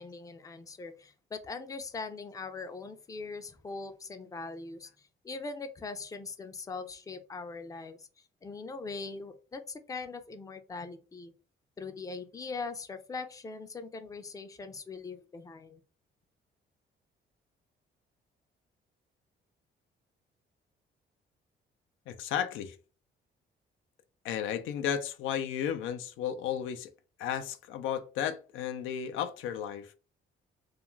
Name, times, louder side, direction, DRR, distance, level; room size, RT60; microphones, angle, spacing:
voice 1, 0.0-4.9 5.2-8.1 8.4-11.3 11.8-15.8, left 4 dB, 15° left, 0.4 m, -41 dB
voice 2, 22.1-22.8 24.2-26.9 27.2-29.9, left 9 dB, 85° left, 0.4 m, -33 dB
2.4 x 2.3 x 3.0 m
cardioid pair, 90°, 20 cm